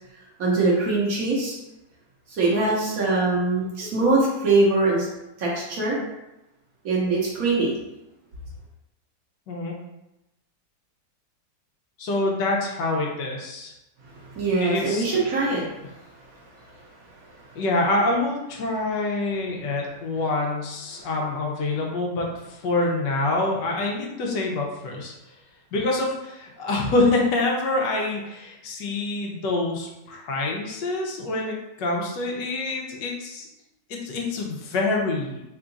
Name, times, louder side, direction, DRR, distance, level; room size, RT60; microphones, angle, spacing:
voice 1, 0.4-1.6 2.3-5.1 5.4-6.0 6.8-7.8 14.1-15.9, right 3 dB, 60° right, -4 dB, 1.3 m, -22 dB
voice 2, 12.0-13.7 14.6-15.0 17.5-25.1 25.7-33.5 33.9-35.4, left 2 dB, 80° left, 0 dB, 1.4 m, -26 dB
3.7 x 2.3 x 3.8 m, 0.93 s
omnidirectional pair, 1.9 m